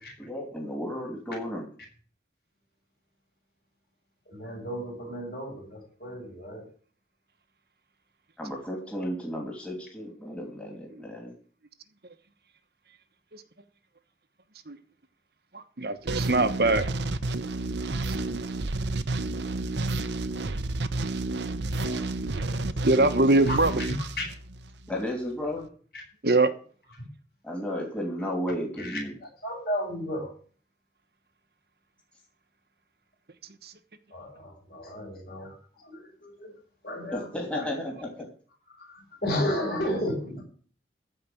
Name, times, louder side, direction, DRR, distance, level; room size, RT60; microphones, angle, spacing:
voice 1, 0.2-1.7 8.4-11.3 24.9-25.7 27.4-29.1 37.1-38.3, left 1 dB, 5° left, 2.7 m, -33 dB
voice 2, 4.3-6.7 21.8-22.1 22.3-22.7 23.5-23.6 24.2-24.3 25.9-26.0 27.0-27.1 28.8-29.0 29.4-30.3 34.1-36.5 36.8-37.6 38.7-40.4, left 1 dB, 55° left, 7.3 m, -33 dB
voice 3, 15.5-16.9 22.8-23.7 26.2-26.5 33.6-33.7, right 2 dB, 60° right, 1.1 m, -22 dB
sound 1, 16.1-24.9, right 2 dB, 80° right, 0.9 m, -30 dB
15.0 x 5.1 x 9.2 m
head